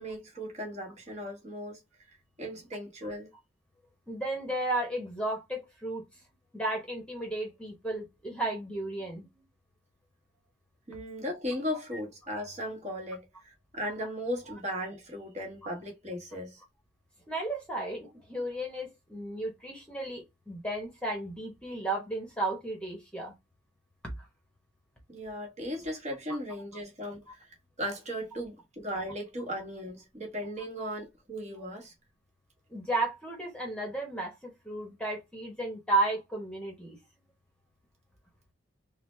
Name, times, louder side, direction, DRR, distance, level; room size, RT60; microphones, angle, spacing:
voice 1, 0.0-1.8 2.4-3.3 10.9-16.6 25.1-27.5 27.8-31.9, equal, 35° right, 1.4 m, -37 dB
voice 2, 4.1-6.0 6.5-9.3 15.6-15.7 17.3-23.3 30.8-30.9 32.7-37.0, right 2 dB, 5° left, 1.1 m, -33 dB
3.9 x 2.1 x 3.2 m
head